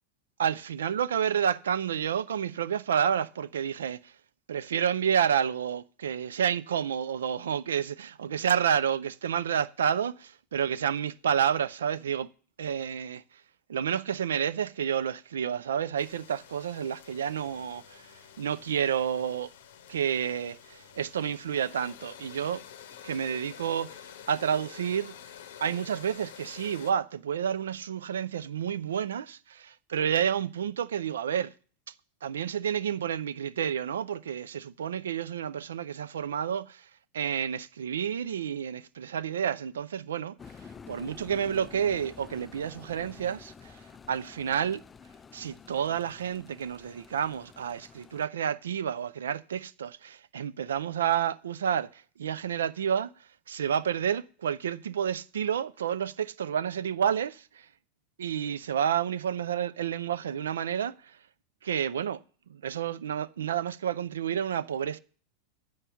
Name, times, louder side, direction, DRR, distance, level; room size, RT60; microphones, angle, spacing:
voice 1, 0.4-4.1 4.5-12.3 12.6-13.2 13.7-18.0 18.4-19.5 19.9-22.6 23.0-25.1 25.6-31.5 32.2-36.8 37.1-40.4 40.9-43.8 44.1-44.8 45.3-53.1 53.5-57.7 58.2-61.2 61.6-62.2 62.5-65.0, right 8 dB, 75° right, 0.4 m, -30 dB
sound 1, 16.0-26.9, left 9 dB, 70° left, 0.7 m, -49 dB
sound 2, 40.4-48.3, left 6 dB, 20° left, 0.3 m, -49 dB
7.7 x 5.5 x 7.2 m
hypercardioid pair, 90°, 0 cm